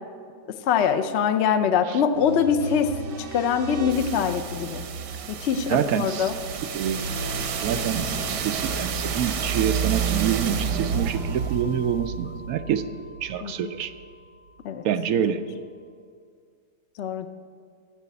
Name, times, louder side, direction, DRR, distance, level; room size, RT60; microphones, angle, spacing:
voice 1, 0.7-2.9 3.3-4.8 5.3-6.3 13.4-13.7 14.6-14.8 17.0-17.3, left 7 dB, 60° left, 10 dB, 0.7 m, -23 dB
sound 1, 2.1-14.0, right 6 dB, 90° right, 1.5 m, -30 dB
voice 2, 5.7-6.3 6.7-7.1 7.6-12.9 13.2-13.9 14.8-15.4, right 9 dB, 70° right, 10 dB, 0.9 m, -26 dB
10.5 x 7.7 x 8.2 m, 2.1 s
omnidirectional pair, 1.8 m